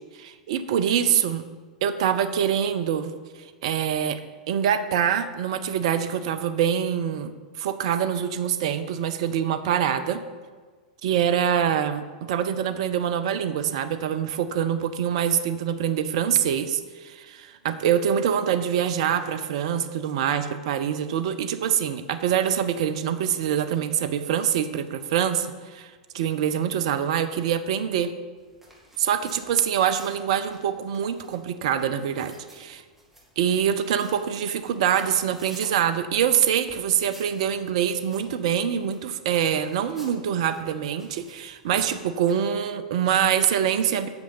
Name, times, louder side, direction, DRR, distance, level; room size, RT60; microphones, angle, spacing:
voice 1, 0.2-1.4 1.8-3.1 3.6-4.2 4.5-7.3 7.6-10.2 11.0-28.1 29.0-32.8 33.4-44.1, right 9 dB, 55° right, 11 dB, 0.6 m, -25 dB
sound 1, 28.4-42.6, right 1 dB, 5° right, 2.2 m, -51 dB
8.2 x 6.3 x 5.1 m, 1.5 s
figure-of-eight pair, 95°, 4 cm